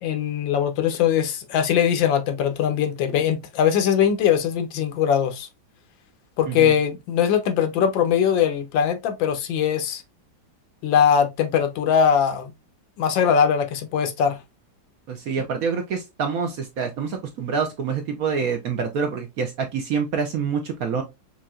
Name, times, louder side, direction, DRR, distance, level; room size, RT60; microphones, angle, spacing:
voice 1, 0.0-5.5 6.4-10.0 10.8-12.5 13.0-14.4, left 8 dB, 80° left, 1.4 m, -21 dB
voice 2, 15.1-21.0, right 6 dB, 65° right, 1.0 m, -26 dB
5.6 x 2.6 x 2.3 m
omnidirectional pair, 2.0 m